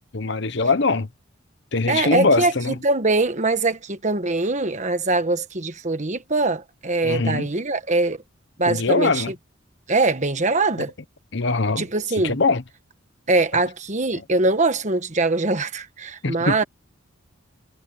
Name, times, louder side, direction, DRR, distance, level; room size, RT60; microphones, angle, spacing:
voice 1, 0.1-1.1 1.7-2.7 7.0-7.5 8.7-9.3 11.3-11.9 12.2-12.6 16.2-16.5, left 3 dB, 60° left, 1.1 m, -21 dB
voice 2, 1.9-8.2 8.6-9.3 9.9-10.9 11.8-12.4 13.3-16.6, right 2 dB, 35° right, 1.3 m, -22 dB
head